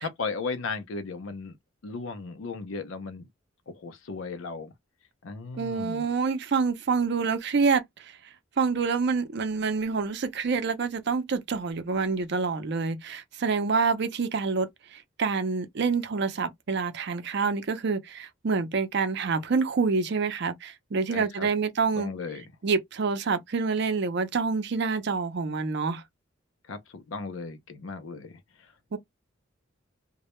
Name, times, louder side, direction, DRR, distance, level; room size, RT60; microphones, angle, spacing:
voice 1, 0.0-1.5 1.8-3.3 3.7-4.7 5.2-6.1 21.1-21.5 21.9-22.4 26.7-28.7, left 4 dB, 85° left, 0.5 m, -36 dB
voice 2, 5.6-8.1 8.6-22.1 22.6-26.0 28.9-29.0, right 4 dB, 60° right, 0.5 m, -27 dB
2.2 x 2.1 x 2.9 m
head